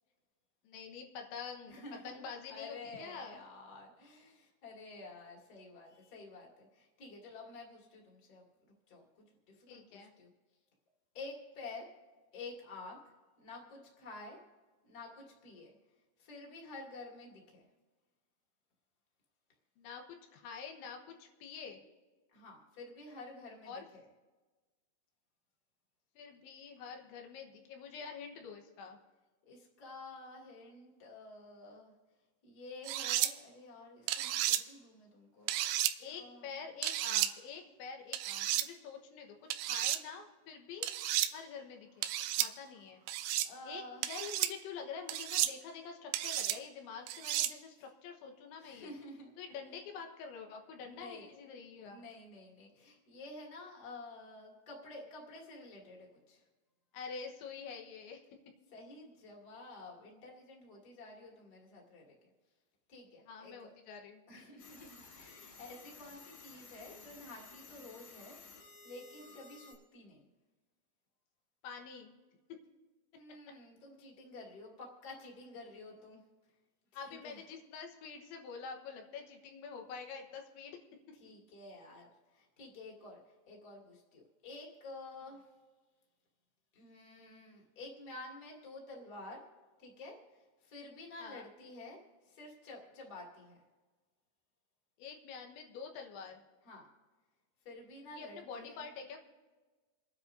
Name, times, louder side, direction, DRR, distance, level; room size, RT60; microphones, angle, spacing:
voice 1, 0.7-3.4 9.7-10.1 19.8-21.8 23.7-23.8 26.2-29.0 36.0-40.9 41.3-42.1 42.4-43.0 43.7-48.9 49.4-52.0 56.9-58.2 63.3-64.2 64.8-64.9 71.6-72.2 72.5-72.6 76.9-80.8 91.2-91.5 95.0-96.4 98.1-99.2, left 6 dB, 85° left, 3 dB, 3.6 m, -47 dB
voice 2, 1.7-8.5 8.9-10.3 11.1-11.9 12.3-13.0 13.4-14.4 14.8-15.7 16.2-17.7 22.3-24.0 29.4-31.9 32.4-36.7 43.4-44.1 48.6-49.4 50.7-51.3 51.8-56.4 58.7-62.3 62.9-63.7 64.3-70.3 73.1-76.2 76.9-77.4 81.1-85.5 86.7-89.4 89.8-93.6 96.6-96.8 97.6-98.9, left 2 dB, 25° left, -2 dB, 2.3 m, -51 dB
sound 1, 32.9-33.3 34.1-34.6 35.5-35.9 36.8-37.3 38.1-38.7 39.5-40.0 40.8-41.3 42.0-42.5 43.1-43.5 44.0-44.5 45.1-45.5 46.1-46.6 47.1-47.5, right 14 dB, 80° right, 2.4 m, -32 dB
sound 2, 64.6-69.7, left 5 dB, 65° left, 5.1 m, -55 dB
28.5 x 10.0 x 2.7 m, 1.3 s
omnidirectional pair, 5.2 m